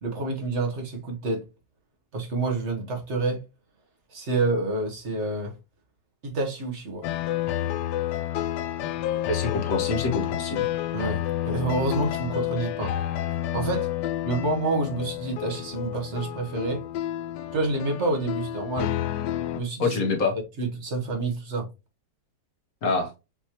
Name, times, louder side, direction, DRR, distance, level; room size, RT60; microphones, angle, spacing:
voice 1, 0.0-1.4 2.1-3.4 4.1-5.5 6.2-7.0 10.9-12.9 13.5-13.9 14.2-16.8 17.5-18.9 19.5-20.0 20.6-21.7, right 3 dB, 40° right, 1.3 m, -28 dB
sound 1, 7.0-19.6, left 13 dB, 75° left, 1.1 m, -30 dB
voice 2, 9.3-10.7 19.8-20.3 22.8-23.1, left 3 dB, 55° left, 1.4 m, -26 dB
5.8 x 3.0 x 2.9 m
omnidirectional pair, 2.0 m